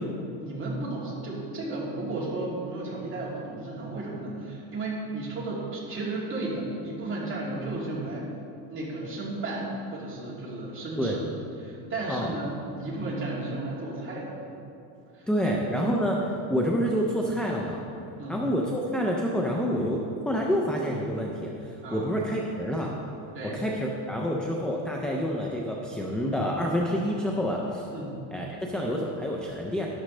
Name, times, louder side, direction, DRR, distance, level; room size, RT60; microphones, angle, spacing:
voice 1, 0.4-8.3 8.7-11.2 11.6-14.4 15.1-15.2 18.2-18.4 21.8-22.1 23.3-23.6 27.9-28.2, right 2 dB, 25° right, -6 dB, 2.8 m, -34 dB
voice 2, 15.3-16.2 16.5-17.8 18.3-22.9 23.4-27.9 28.3-29.9, equal, ahead, -1 dB, 0.3 m, -28 dB
12.5 x 11.0 x 3.2 m, 2.7 s
cardioid pair, 145°, 48 cm